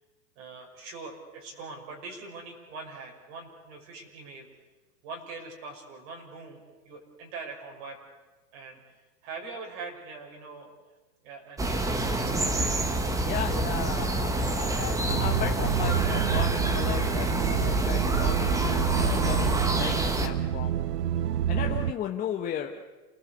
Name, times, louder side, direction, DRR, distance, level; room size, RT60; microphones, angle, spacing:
voice 1, 0.4-4.5 5.0-8.0 8.5-10.7 11.2-12.7, right 4 dB, 45° right, 1 dB, 6.0 m, -43 dB
sound 1, 11.6-20.3, right 1 dB, 5° right, 1.2 m, -27 dB
voice 2, 13.2-20.8 21.5-22.8, left 9 dB, 20° left, 2 dB, 1.1 m, -35 dB
sound 2, 15.1-21.9, right 11 dB, 90° right, 0.9 m, -28 dB
28.5 x 19.0 x 8.0 m, 1.2 s
supercardioid pair, 155°, 47 cm